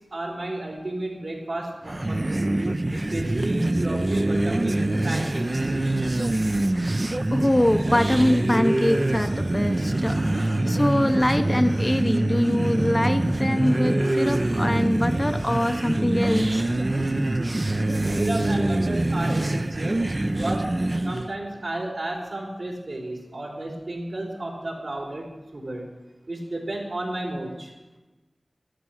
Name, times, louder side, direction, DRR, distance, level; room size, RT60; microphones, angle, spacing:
voice 1, 0.1-2.5 2.9-5.8 18.1-20.7 21.0-25.9 26.3-27.7, right 1 dB, 75° right, -2 dB, 4.1 m, -32 dB
sound 1, 1.8-21.3, right 1 dB, 35° right, 0.6 m, -24 dB
voice 2, 7.3-16.7, left 1 dB, 20° left, 9 dB, 0.7 m, -24 dB
13.0 x 12.0 x 6.4 m, 1.1 s
wide cardioid pair, 70°, 0 cm